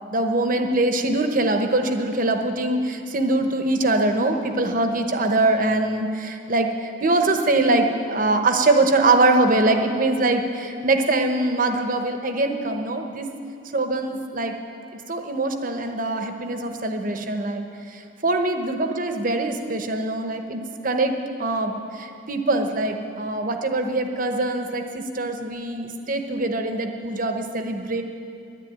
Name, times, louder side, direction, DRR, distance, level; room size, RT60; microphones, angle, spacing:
voice 1, 0.1-13.3 13.7-14.5 15.1-17.6 17.9-21.1 21.4-28.0, right 2 dB, 45° right, 5 dB, 0.9 m, -23 dB
11.0 x 10.0 x 9.0 m, 2.7 s
head